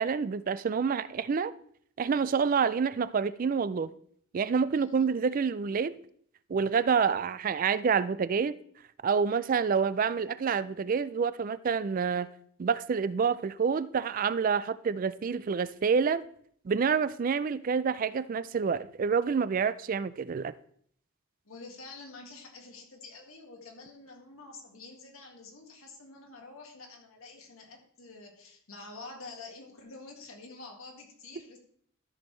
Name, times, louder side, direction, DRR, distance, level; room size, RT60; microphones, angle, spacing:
voice 1, 0.0-1.5 2.0-3.9 4.3-5.9 6.5-8.6 9.0-12.3 12.6-16.2 16.6-20.5, right 6 dB, 40° right, 0.3 m, -28 dB
voice 2, 4.7-5.1 21.5-31.6, left 3 dB, 80° left, 1.9 m, -48 dB
13.5 x 6.2 x 3.2 m
head